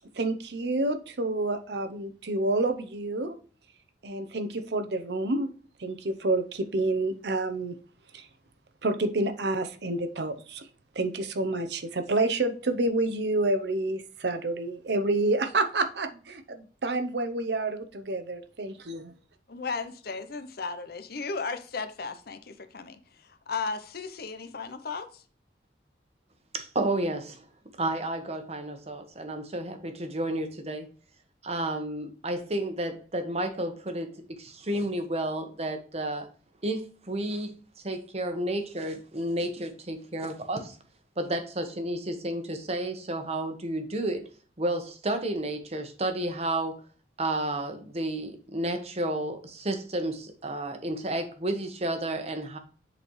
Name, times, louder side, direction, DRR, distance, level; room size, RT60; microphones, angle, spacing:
voice 1, 0.2-3.4 4.0-5.5 5.8-7.8 8.1-8.3 8.8-10.7 11.0-19.1, right 2 dB, 65° right, 0.7 m, -28 dB
voice 2, 19.5-25.2, left 4 dB, 60° left, 0.7 m, -35 dB
voice 3, 26.5-27.4 27.8-30.9 31.4-36.3 36.6-37.5 37.8-40.8 41.2-44.2 44.6-46.8 47.2-52.6, right 1 dB, 35° right, 1.0 m, -31 dB
7.9 x 4.1 x 3.1 m
head